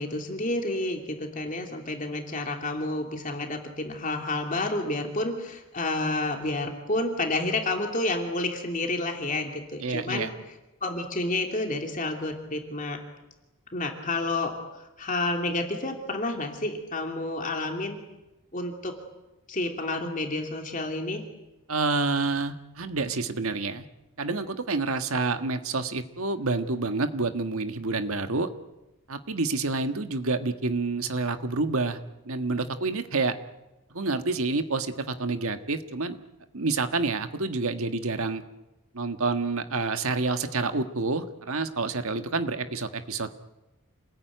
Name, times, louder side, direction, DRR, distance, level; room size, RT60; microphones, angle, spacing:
voice 1, 0.0-10.3 10.8-13.0 13.7-18.0 18.5-18.9 19.5-21.2, left 2 dB, 35° left, 3 dB, 2.8 m, -30 dB
voice 2, 9.8-10.3 21.7-23.8 24.2-28.5 29.1-32.0 32.2-33.4 33.9-36.2 36.5-38.4 38.9-43.3, right 3 dB, 75° right, 8 dB, 1.5 m, -28 dB
27.5 x 19.5 x 9.2 m, 1.0 s
head